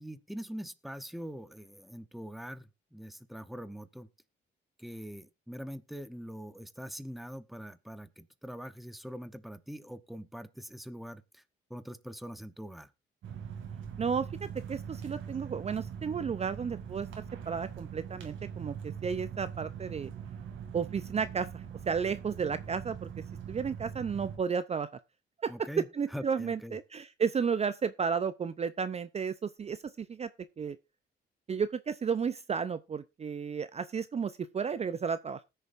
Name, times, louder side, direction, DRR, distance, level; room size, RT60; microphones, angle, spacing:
voice 1, 0.0-4.1 4.8-11.4 11.7-12.9 25.5-26.8, equal, ahead, 0.8 m, -43 dB
sound 1, 13.2-24.4, right 8 dB, 75° right, 2.4 m, -42 dB
voice 2, 14.0-17.1 17.5-20.1 20.7-23.1 23.5-24.9 25.4-25.5 26.0-30.3 30.6-30.8 31.5-35.5, right 6 dB, 35° right, 0.5 m, -33 dB
19.5 x 6.7 x 2.5 m
cardioid pair, 90°, 20 cm